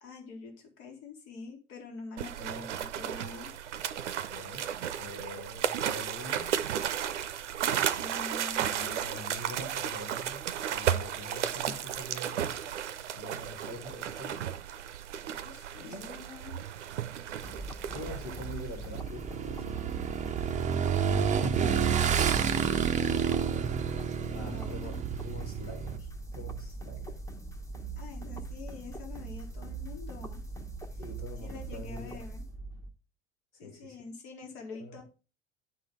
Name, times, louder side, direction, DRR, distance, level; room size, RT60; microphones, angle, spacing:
voice 1, 0.0-3.5 8.0-9.2 9.6-9.8 15.4-16.6 23.9-25.0 28.0-30.4 31.4-32.5 33.6-35.0, left 4 dB, 65° left, 1.9 m, -46 dB
sound 1, 2.2-19.0, right 9 dB, 80° right, 0.6 m, -34 dB
voice 2, 4.3-6.6 8.7-12.6 13.1-14.5 15.8-16.1 17.9-20.2 21.0-23.7 24.3-27.2 31.0-32.2 33.5-34.0 34.8-35.0, left 1 dB, 85° left, 1.6 m, -45 dB
sound 2, 17.4-32.9, right 3 dB, 10° left, 0.9 m, -41 dB
Motorcycle / Engine, 19.0-26.0, right 7 dB, 20° right, 0.5 m, -29 dB
10.5 x 3.9 x 3.5 m
figure-of-eight pair, 75°, 35 cm